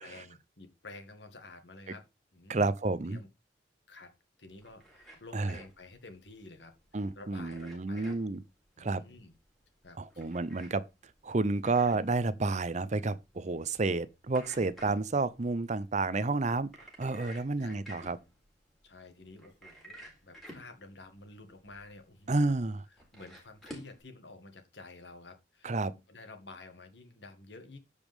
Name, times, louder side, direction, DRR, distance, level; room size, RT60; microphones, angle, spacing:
voice 1, 0.0-2.0 2.3-2.7 3.0-3.3 3.9-4.1 4.4-8.2 8.8-9.3 9.8-10.4 10.7-10.8 11.8-11.9 17.6-17.8 18.8-22.5 23.1-27.8, left 3 dB, 70° left, 2.1 m, -51 dB
voice 2, 2.5-3.2 5.3-5.6 6.9-8.4 8.8-9.0 10.0-10.8 11.2-16.7 17.0-18.2 22.3-22.8 25.6-25.9, right 3 dB, 40° right, 0.6 m, -30 dB
sound 1, 4.5-24.0, equal, ahead, 3.9 m, -53 dB
13.5 x 5.2 x 3.5 m
head